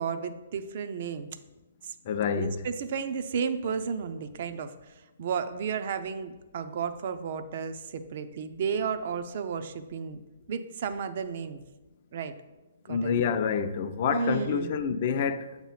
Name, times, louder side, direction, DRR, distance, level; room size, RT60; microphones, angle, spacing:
voice 1, 0.0-1.4 1.8-1.9 2.3-4.7 5.2-10.2 10.5-11.6 12.1-12.3 12.9-13.1 14.1-14.8, right 6 dB, 50° right, 0.6 m, -32 dB
voice 2, 2.1-2.6 12.9-15.5, left 6 dB, 45° left, 0.5 m, -27 dB
7.3 x 3.0 x 5.6 m
hypercardioid pair, 140°, 0 cm